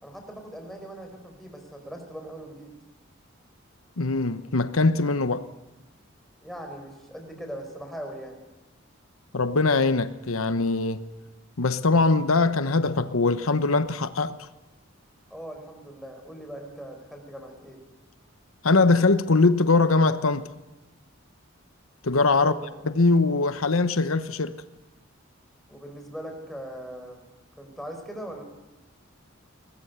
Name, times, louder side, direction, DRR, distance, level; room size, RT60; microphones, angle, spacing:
voice 1, 0.0-2.7 6.4-8.4 15.3-17.8 22.4-22.8 25.7-27.3 27.6-28.4, right 1 dB, ahead, 4.8 m, -40 dB
voice 2, 4.0-5.5 9.3-11.1 11.6-14.5 18.6-20.5 22.0-22.5 22.8-24.6, left 3 dB, 85° left, 1.0 m, -22 dB
22.0 x 20.0 x 8.1 m
head